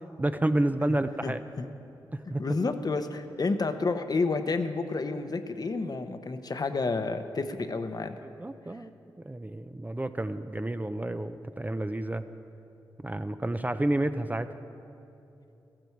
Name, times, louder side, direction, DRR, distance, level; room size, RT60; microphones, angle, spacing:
voice 1, 0.2-1.4 2.1-2.4 8.2-8.9 9.2-12.3 13.0-14.5, right 1 dB, 20° right, 10 dB, 0.6 m, -30 dB
voice 2, 1.2-1.7 2.3-8.2, left 3 dB, 50° left, 8 dB, 0.9 m, -30 dB
14.0 x 13.5 x 4.7 m, 2.9 s
cardioid pair, 50°, 9 cm